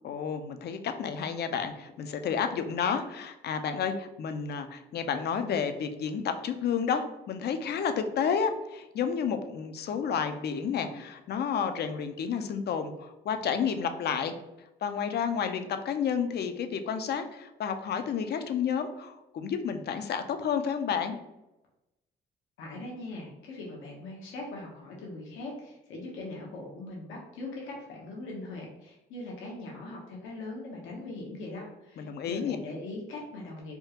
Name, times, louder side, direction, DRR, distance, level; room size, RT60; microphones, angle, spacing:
voice 1, 0.0-14.4 14.8-21.2 32.0-32.6, left 7 dB, 55° left, 8 dB, 0.4 m, -31 dB
voice 2, 22.6-33.8, left 2 dB, 85° left, -2 dB, 0.8 m, -41 dB
3.5 x 2.3 x 2.8 m, 0.94 s
cardioid pair, 90°, 20 cm